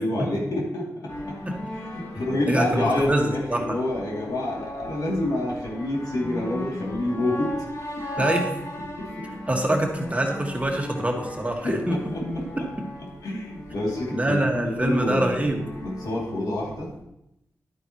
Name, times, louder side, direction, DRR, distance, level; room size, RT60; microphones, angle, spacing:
voice 1, 0.0-1.4 1.7-7.6 9.0-9.3 11.6-12.4 13.2-16.9, left 1 dB, 85° left, -3 dB, 2.6 m, -28 dB
sound 1, 1.1-17.0, left 1 dB, 65° left, 2.7 m, -36 dB
voice 2, 2.5-3.8 8.2-8.5 9.5-12.0 12.5-12.6 14.1-15.6, right 1 dB, 20° right, 2 dB, 1.6 m, -25 dB
11.0 x 8.8 x 3.0 m, 0.83 s
cardioid pair, 60°, 6 cm